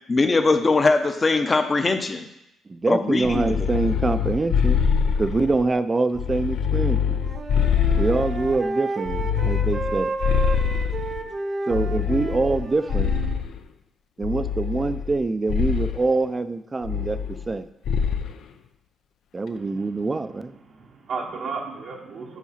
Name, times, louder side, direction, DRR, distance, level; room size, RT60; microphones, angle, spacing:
voice 1, 0.1-2.3 2.9-3.7, left 3 dB, 30° left, 7 dB, 0.7 m, -21 dB
voice 2, 2.7-4.8 5.2-7.2 8.0-10.1 11.7-13.1 14.2-17.2 17.5-17.7 19.3-20.5, right 3 dB, 25° right, 12 dB, 0.5 m, -24 dB
sound 1, 3.2-5.7 6.1-8.6 9.1-11.2 11.7-13.6 14.2-15.2 15.5-16.0 16.8-17.6 17.9-18.3, left 7 dB, 75° left, 0.5 m, -24 dB
Wind instrument woodwind instrument, 6.9-13.4, right 3 dB, 40° right, 0.8 m, -32 dB
voice 3, 19.5-20.1 20.6-22.4, right 4 dB, 70° right, -2 dB, 1.1 m, -34 dB
7.3 x 4.8 x 5.7 m, 0.83 s
cardioid pair, 90°, 0 cm